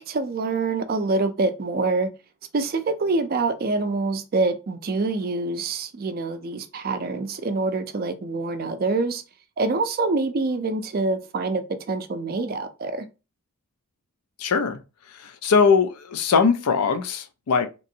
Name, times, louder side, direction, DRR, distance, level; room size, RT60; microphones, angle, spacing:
voice 1, 0.0-2.1 2.5-9.2 9.6-13.0, right 3 dB, 40° right, 0.3 m, -25 dB
voice 2, 14.4-14.8 15.1-17.7, left 5 dB, 85° left, 0.5 m, -21 dB
2.9 x 2.5 x 2.7 m
head